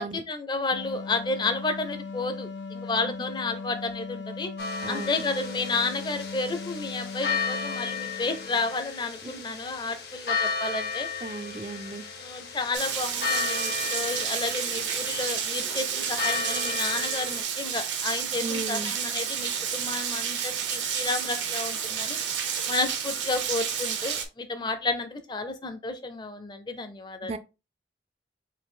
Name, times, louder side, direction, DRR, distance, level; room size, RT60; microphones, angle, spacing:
voice 1, 0.0-4.5 4.9-11.1 12.2-22.2 22.7-27.3, left 3 dB, 25° left, 0.6 m, -31 dB
sound 1, 0.7-8.8, left 4 dB, 85° left, 0.6 m, -38 dB
sound 2, 4.6-17.4, left 5 dB, 60° left, 1.0 m, -34 dB
voice 2, 4.8-5.2 11.2-12.0 18.4-18.9 27.2-27.4, right 3 dB, 35° right, 0.4 m, -35 dB
Rain, 12.7-24.2, right 8 dB, 85° right, 0.9 m, -30 dB
4.7 x 2.5 x 3.7 m
head